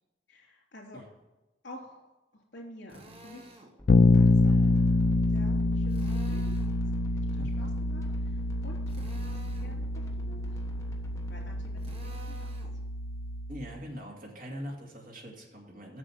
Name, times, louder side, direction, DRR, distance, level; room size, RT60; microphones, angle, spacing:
voice 1, 0.3-1.0 1.6-3.7 4.1-4.7 5.3-7.0 7.3-8.8 9.1-10.6 11.3-12.5, left 1 dB, 80° left, -1 dB, 3.3 m, -50 dB
Drill, 2.9-3.7 5.9-6.8 8.9-9.8 11.8-12.8, equal, 35° right, 1.3 m, -50 dB
sound 1, 3.8-11.9, equal, 20° left, 1.3 m, -47 dB
Bass guitar, 3.9-13.7, left 3 dB, 55° left, 0.4 m, -27 dB
voice 2, 7.4-7.7 13.5-16.0, equal, 50° right, -1 dB, 2.4 m, -42 dB
7.8 x 6.9 x 7.2 m, 1.1 s
head